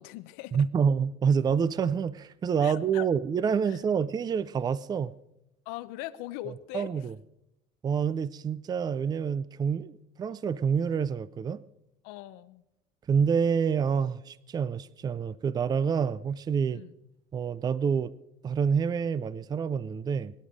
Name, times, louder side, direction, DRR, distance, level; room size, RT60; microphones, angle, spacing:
voice 1, 0.0-0.7 2.6-3.1 3.7-3.8 5.7-7.0 12.0-12.6 16.7-17.0, left 16 dB, 90° left, 0.8 m, -41 dB
voice 2, 0.5-5.1 6.5-7.2 7.8-11.6 13.1-16.8 17.3-18.1 18.4-20.3, right 6 dB, 25° right, 0.5 m, -27 dB
23.0 x 11.0 x 5.1 m
cardioid pair, 125°, 16 cm